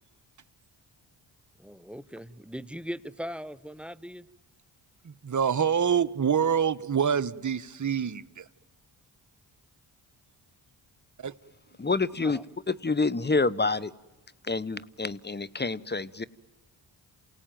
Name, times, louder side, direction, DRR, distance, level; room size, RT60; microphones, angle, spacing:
voice 1, 1.6-4.3 12.2-12.4, equal, ahead, 14 dB, 1.1 m, -39 dB
voice 2, 5.0-8.4 11.2-11.3, right 7 dB, 35° right, 13 dB, 1.1 m, -26 dB
voice 3, 11.8-12.4 12.7-13.9 14.4-16.2, left 3 dB, 20° left, 19 dB, 1.0 m, -27 dB
28.0 x 18.0 x 9.2 m, 1.2 s
supercardioid pair, 45°, 49 cm